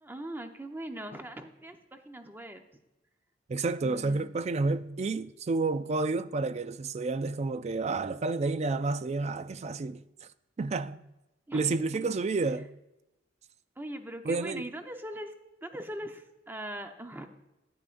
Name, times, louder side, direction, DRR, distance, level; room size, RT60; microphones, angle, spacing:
voice 1, 0.0-2.6 3.8-4.3 11.5-12.2 13.8-15.3 15.6-17.3, right 1 dB, 10° right, 0.8 m, -41 dB
voice 2, 3.5-10.0 10.6-11.0 11.5-12.7 14.2-14.6, right 3 dB, 35° right, 0.4 m, -30 dB
12.5 x 9.8 x 2.5 m
head